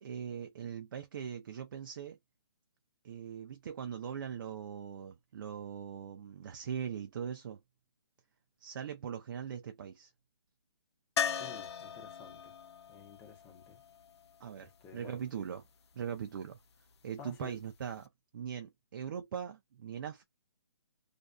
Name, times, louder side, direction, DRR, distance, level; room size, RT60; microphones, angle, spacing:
voice 1, 0.0-2.2 3.0-7.6 8.6-10.1 14.4-15.6 15.9-16.6 17.0-18.1 18.3-20.2, right 8 dB, 50° right, 0.5 m, -41 dB
sound 1, 11.2-15.0 17.7-17.8 18.0-18.1, left 7 dB, 75° left, 0.4 m, -39 dB
voice 2, 11.4-12.5 12.9-13.8 14.6-15.2 17.2-17.6, left 6 dB, 15° left, 0.7 m, -52 dB
2.5 x 2.2 x 2.2 m
hypercardioid pair, 150°, 14 cm